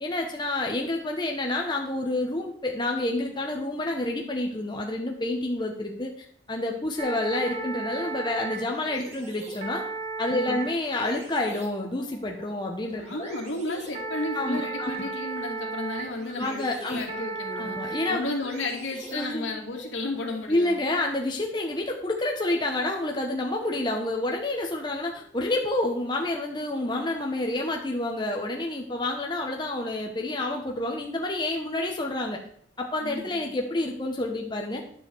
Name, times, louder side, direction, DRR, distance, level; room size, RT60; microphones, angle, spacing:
voice 1, 0.0-6.1 6.5-9.8 10.2-13.3 14.3-14.9 16.4-17.0 17.6-18.3 19.1-19.5 20.5-32.4 32.8-34.8, left 2 dB, 25° left, 1 dB, 1.0 m, -29 dB
sound 1, 7.0-19.8, right 3 dB, 35° right, 2.0 m, -37 dB
voice 2, 10.3-10.6 13.0-20.9 33.0-33.5, left 2 dB, 80° left, 1 dB, 2.3 m, -33 dB
10.0 x 7.5 x 4.6 m, 0.62 s
head